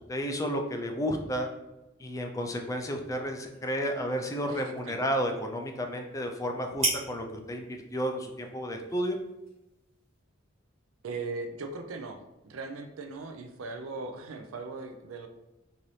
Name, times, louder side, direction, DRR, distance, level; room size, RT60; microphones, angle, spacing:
voice 1, 0.1-1.5 2.0-9.2, equal, 15° left, 3 dB, 0.4 m, -32 dB
sound 1, 2.5-10.2, right 2 dB, 30° right, 1.5 m, -40 dB
voice 2, 11.0-15.3, right 3 dB, 80° right, 6 dB, 0.5 m, -39 dB
4.0 x 2.7 x 3.1 m, 0.95 s
head